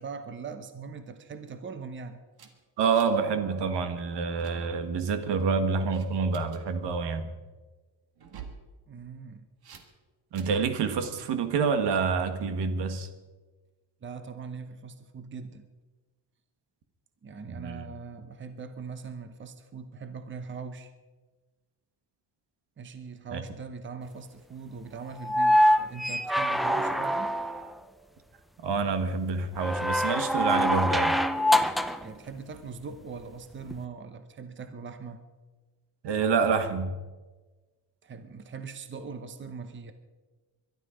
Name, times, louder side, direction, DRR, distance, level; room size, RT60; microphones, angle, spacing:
voice 1, 0.0-2.2 8.9-9.5 14.0-15.7 17.2-20.9 22.8-27.3 32.0-35.2 38.0-39.9, right 5 dB, 30° right, 9 dB, 1.0 m, -41 dB
sound 1, 2.4-3.3 3.5-3.8 4.1-4.6 5.1-5.5 5.9-6.6 8.2-8.6 9.6-9.9 10.4-10.7, right 7 dB, 60° right, 1.9 m, -47 dB
voice 2, 2.8-7.3 10.3-13.1 17.5-17.8 23.3-23.4 28.6-31.2 36.0-36.9, right 5 dB, 80° right, 9 dB, 1.7 m, -27 dB
sound 2, 25.2-27.7 29.6-32.1 33.7-33.8, equal, ahead, 0.5 m, -24 dB
22.5 x 12.0 x 5.1 m, 1.3 s
cardioid pair, 160°, 41 cm